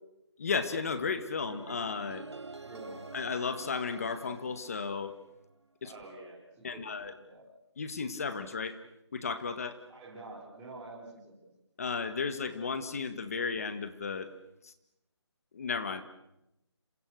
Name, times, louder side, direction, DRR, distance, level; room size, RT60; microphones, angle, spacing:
voice 1, 0.4-2.2 3.1-5.1 5.8-5.9 6.6-7.1 7.8-8.8 9.1-9.8 11.8-14.3 14.6-14.7 15.5-16.0, left 5 dB, 30° left, 11 dB, 1.7 m, -34 dB
sound 1, 1.5-5.5, right 3 dB, 70° right, 3.5 m, -48 dB
voice 2, 2.6-3.0 5.8-7.4 9.9-11.5, right 2 dB, 10° right, -7 dB, 5.1 m, -48 dB
28.5 x 27.5 x 6.5 m, 0.88 s
figure-of-eight pair, 170°, 15 cm